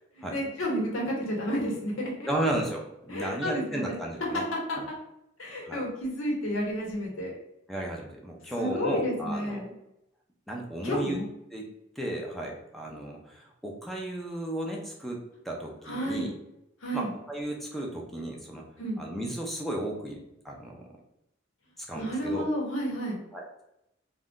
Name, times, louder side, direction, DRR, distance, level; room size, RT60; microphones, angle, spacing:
voice 1, 0.1-2.3 3.1-4.0 4.3-4.4 4.7-4.8 5.4-7.3 8.5-9.7 10.8-11.2 15.8-16.3 16.8-17.1 18.8-19.0 21.9-23.2, equal, 85° left, -2 dB, 0.9 m, -31 dB
voice 2, 2.2-4.4 4.8-4.9 5.6-5.8 7.7-9.6 10.5-11.2 11.5-11.7 12.0-16.3 16.9-18.6 19.0-20.8 21.9-22.5 23.3-23.6, right 1 dB, ahead, -1 dB, 0.4 m, -34 dB
2.5 x 2.2 x 3.5 m, 0.84 s
head